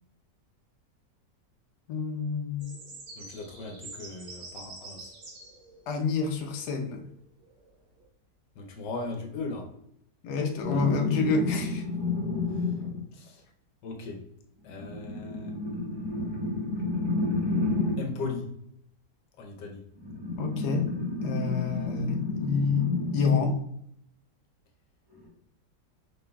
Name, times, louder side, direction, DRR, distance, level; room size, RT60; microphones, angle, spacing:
voice 1, 1.9-2.7 5.9-7.0 10.2-11.8 20.4-20.9 21.2-23.6, left 4 dB, 70° left, 1.2 m, -28 dB
sound 1, 2.6-8.0, right 3 dB, 55° right, 1.7 m, -47 dB
voice 2, 3.2-5.1 8.5-9.7 12.5-12.7 13.1-13.4 13.8-14.3 14.6-16.6 18.0-18.5 19.4-19.9, left 3 dB, 85° left, 1.5 m, -38 dB
sound 2, 10.6-13.1 14.6-18.2 20.0-23.5 25.2-25.3, left 2 dB, 15° right, 1.7 m, -31 dB
5.5 x 3.6 x 2.3 m
omnidirectional pair, 1.8 m